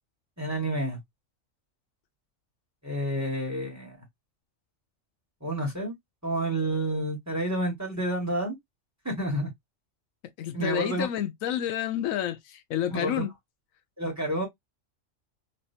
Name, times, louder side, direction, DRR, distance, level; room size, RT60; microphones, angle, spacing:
voice 1, 0.4-1.0 2.8-4.0 5.4-5.9 6.2-8.6 9.0-9.5 10.5-11.1 12.9-13.2 14.0-14.5, right 1 dB, 10° right, 1.7 m, -29 dB
voice 2, 10.4-13.3, left 10 dB, 90° left, 1.1 m, -29 dB
3.3 x 3.0 x 2.7 m
omnidirectional pair, 1.3 m